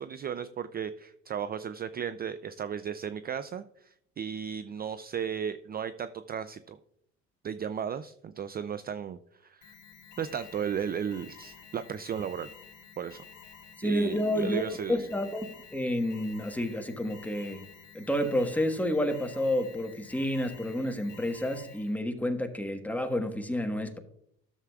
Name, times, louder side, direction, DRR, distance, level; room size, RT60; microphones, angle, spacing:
voice 1, 0.0-6.8 7.4-9.7 10.2-12.5 13.0-13.2 13.8-15.1, right 8 dB, 30° right, 0.4 m, -35 dB
Alarm, 9.6-22.0, left 6 dB, 65° left, 2.8 m, -51 dB
voice 2, 13.8-17.6 17.9-24.0, left 1 dB, 5° left, 1.3 m, -30 dB
12.5 x 7.2 x 2.3 m
supercardioid pair, 85°, 33 cm